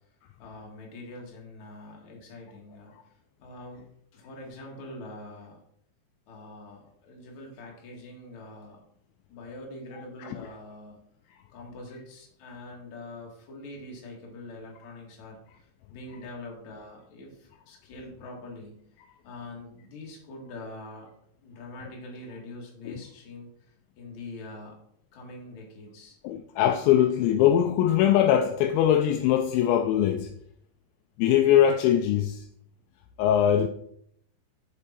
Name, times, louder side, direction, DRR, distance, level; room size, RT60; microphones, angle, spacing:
voice 1, 0.4-3.0 3.4-3.8 4.1-5.6 6.3-8.8 9.3-11.0 11.5-18.8 19.2-21.1 21.4-24.8 25.1-26.2, left 2 dB, 50° left, 2.5 m, -44 dB
voice 2, 26.2-30.3 31.2-32.5 33.2-33.7, left 10 dB, 85° left, 2.6 m, -22 dB
7.3 x 6.8 x 4.4 m
omnidirectional pair, 5.7 m